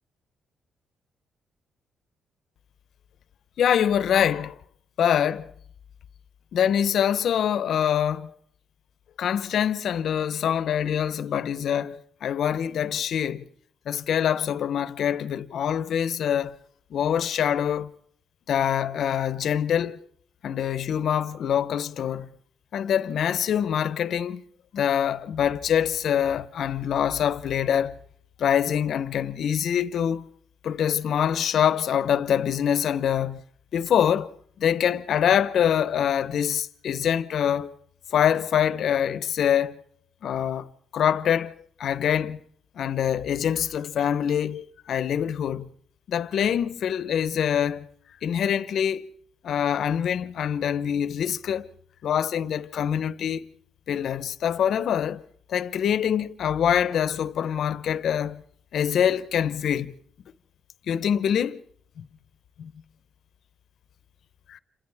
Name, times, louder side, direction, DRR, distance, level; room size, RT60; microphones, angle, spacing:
voice 1, 3.6-4.5 5.0-5.5 6.5-8.3 9.2-13.5 13.9-16.6 16.9-17.9 18.5-20.0 20.4-22.3 22.7-24.4 24.7-27.9 28.4-30.2 30.6-33.4 33.7-37.8 38.1-39.8 40.2-42.4 42.7-45.7 46.1-47.9 48.2-49.1 49.4-51.7 52.0-53.5 53.9-55.2 55.5-58.4 58.7-59.9 60.9-61.6 62.0-62.1 62.6-62.7 64.5-64.6, left 9 dB, 65° left, 0.9 m, -25 dB
29.5 x 27.5 x 3.5 m
cardioid pair, 90°, 0 cm